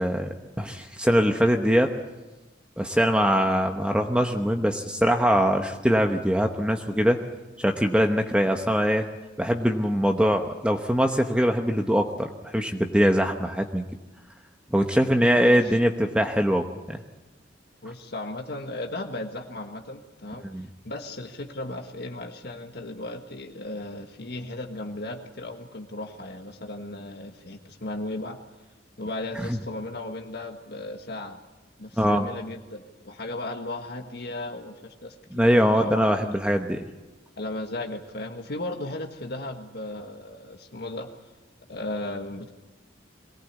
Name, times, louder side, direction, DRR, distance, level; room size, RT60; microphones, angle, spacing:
voice 1, 0.0-1.9 2.8-7.2 7.6-9.1 9.4-13.8 14.7-17.0 20.5-20.7 32.0-32.3 35.3-36.8, equal, 5° right, 4 dB, 1.0 m, -22 dB
voice 2, 15.3-15.8 17.8-28.4 29.0-31.4 31.8-36.3 37.4-41.1 41.7-42.5, left 2 dB, 60° left, 4 dB, 1.6 m, -36 dB
23.0 x 18.0 x 8.3 m, 1.1 s
head